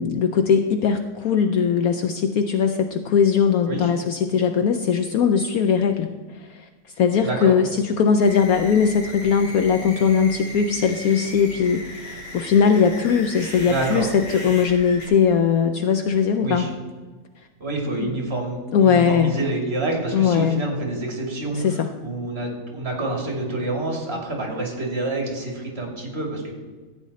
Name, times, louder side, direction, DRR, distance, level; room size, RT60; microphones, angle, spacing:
voice 1, 0.0-6.1 6.4-6.7 7.0-16.7 18.0-18.1 18.7-19.4 20.1-20.6 21.5-21.9, left 6 dB, 65° left, 7 dB, 1.0 m, -20 dB
voice 2, 7.2-7.5 13.7-14.1 16.4-16.7 17.6-26.5, right 2 dB, 35° right, 1 dB, 2.7 m, -27 dB
sound 1, 8.2-15.1, left 1 dB, 85° left, 3.8 m, -37 dB
14.0 x 8.4 x 4.2 m, 1.4 s
omnidirectional pair, 1.8 m